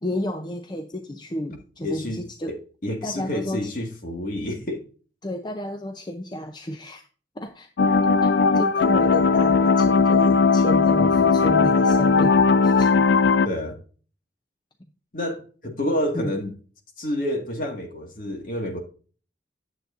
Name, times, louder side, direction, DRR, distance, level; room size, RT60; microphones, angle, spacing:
voice 1, 0.0-2.5 3.0-3.7 5.2-7.0 7.4-7.7 8.2-8.3 8.5-13.1 16.1-16.3, equal, 25° left, 5 dB, 0.6 m, -31 dB
voice 2, 1.8-2.2 2.5-2.6 2.8-4.8 11.0-11.6 13.4-13.8 15.1-16.5 17.0-18.8, left 1 dB, 50° left, 2 dB, 1.8 m, -29 dB
sound 1, 7.8-13.5, left 4 dB, 80° left, 0.4 m, -18 dB
9.5 x 7.5 x 2.5 m, 0.39 s
head